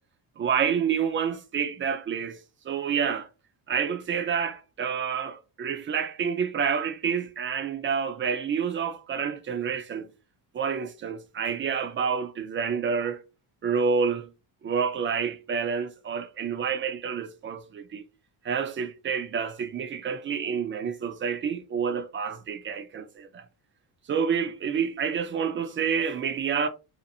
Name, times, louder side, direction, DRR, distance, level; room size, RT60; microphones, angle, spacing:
voice 1, 0.4-2.4 2.6-3.3 3.7-10.1 10.5-13.2 13.6-14.3 14.6-18.1 18.4-23.4 24.1-26.7, right 6 dB, 30° right, 0.4 m, -28 dB
2.7 x 2.4 x 2.6 m
cardioid pair, 110°, 44 cm